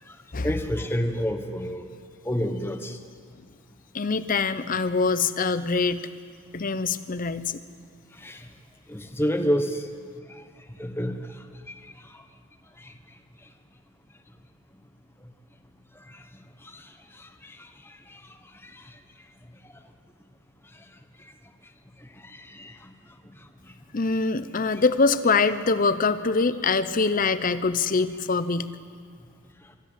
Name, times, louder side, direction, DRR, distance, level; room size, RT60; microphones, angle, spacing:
voice 1, 0.4-1.9 2.2-3.0 8.2-8.5 8.9-9.9 10.3-10.4 10.8-11.2 11.7-11.9 12.8-12.9 16.1-16.2 16.6-16.9 17.2-18.2 18.6-18.8 22.2-22.9 24.7-24.8, equal, 10° left, 6 dB, 1.1 m, -30 dB
voice 2, 3.9-6.1 6.5-7.6 23.9-28.7, left 4 dB, 40° left, 13 dB, 0.7 m, -24 dB
24.5 x 13.0 x 8.4 m, 2.1 s
head